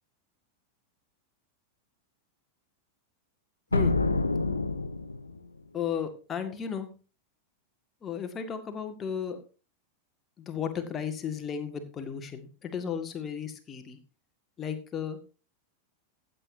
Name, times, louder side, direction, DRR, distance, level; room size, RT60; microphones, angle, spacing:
sound 1, 3.7-5.5, left 3 dB, 80° left, 0.7 m, -27 dB
voice 1, 5.7-6.9 8.0-9.4 10.4-14.0 14.6-15.2, left 7 dB, 25° left, 7 dB, 1.9 m, -34 dB
15.5 x 8.4 x 2.8 m, 0.34 s
figure-of-eight pair, 90°, 0 cm